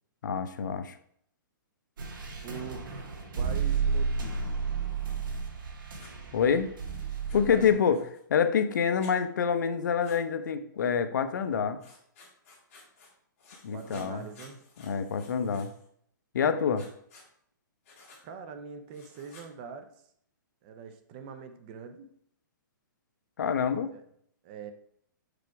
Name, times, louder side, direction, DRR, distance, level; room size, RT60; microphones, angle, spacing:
voice 1, 0.2-0.9 6.3-6.7 7.3-8.0 8.3-11.8 13.6-14.2 14.8-15.7 16.3-16.8 23.4-23.9, left 7 dB, 65° left, 10 dB, 0.7 m, -26 dB
sound 1, 2.0-7.7, right 5 dB, 75° right, 2.0 m, -32 dB
voice 2, 2.4-4.4 7.3-8.0 13.7-14.6 18.2-19.9 20.6-22.1 23.9-24.0 24.4-24.7, right 6 dB, 25° right, 8 dB, 0.5 m, -43 dB
Writing, 6.0-6.1 7.3-8.2 9.0-9.1 10.0-10.2 11.8-13.1 13.4-15.9 16.7-17.3 17.8-18.2 18.9-19.5, left 3 dB, 35° left, 2.2 m, -54 dB
6.0 x 5.1 x 4.6 m, 0.67 s
hypercardioid pair, 170°, 11 cm